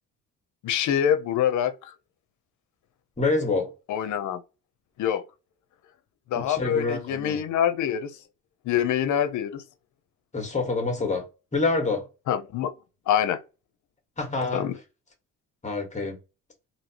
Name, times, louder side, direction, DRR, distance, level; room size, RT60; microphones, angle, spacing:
voice 1, 0.6-1.9 3.9-4.4 5.0-5.2 6.3-8.2 8.7-9.6 12.3-12.7 13.1-13.4 14.5-14.8, left 9 dB, 75° left, 0.7 m, -25 dB
voice 2, 3.2-3.7 6.3-7.4 10.3-12.1 14.2-14.7 15.6-16.2, left 3 dB, 25° left, 1.4 m, -27 dB
3.1 x 2.8 x 2.8 m
cardioid pair, 90°, 30 cm